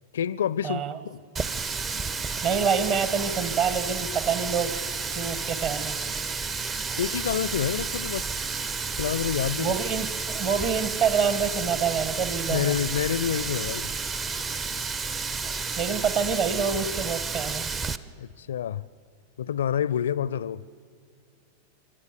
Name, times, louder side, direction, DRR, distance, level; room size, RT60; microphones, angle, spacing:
voice 1, 0.1-1.2 7.0-8.3 9.0-9.8 12.5-13.9 18.2-18.8 19.4-20.6, left 9 dB, 65° left, 0.4 m, -28 dB
voice 2, 0.6-1.0 2.4-4.7 5.1-6.0 9.6-12.7 15.8-17.6, right 6 dB, 40° right, 1.5 m, -26 dB
Water tap faucet, 1.4-18.0, right 4 dB, 20° right, 0.6 m, -31 dB
30.0 x 13.0 x 6.8 m
figure-of-eight pair, 90°, 0 cm